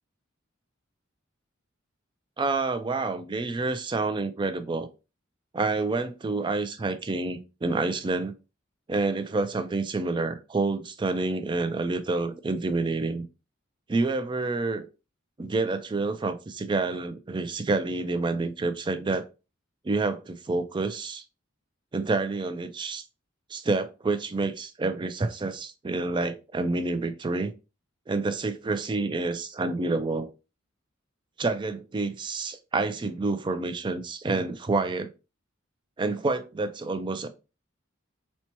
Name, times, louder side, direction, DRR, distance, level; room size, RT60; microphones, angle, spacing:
voice 1, 2.4-4.9 5.5-8.3 8.9-13.2 13.9-14.9 15.4-19.2 19.8-21.2 21.9-23.0 23.5-27.5 28.1-30.3 31.4-35.1 36.0-37.3, right 3 dB, 25° right, 0.4 m, -28 dB
4.2 x 2.2 x 2.9 m
head